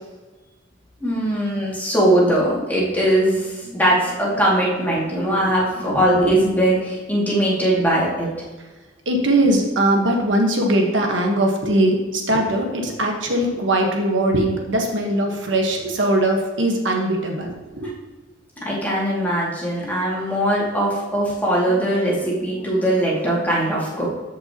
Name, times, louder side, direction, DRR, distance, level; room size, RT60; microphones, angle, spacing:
voice 1, 1.0-8.3 18.6-24.1, right 1 dB, 10° left, -6 dB, 2.3 m, -20 dB
voice 2, 9.1-17.9, right 1 dB, 75° right, 1 dB, 1.3 m, -20 dB
14.0 x 5.4 x 3.0 m, 1.2 s
head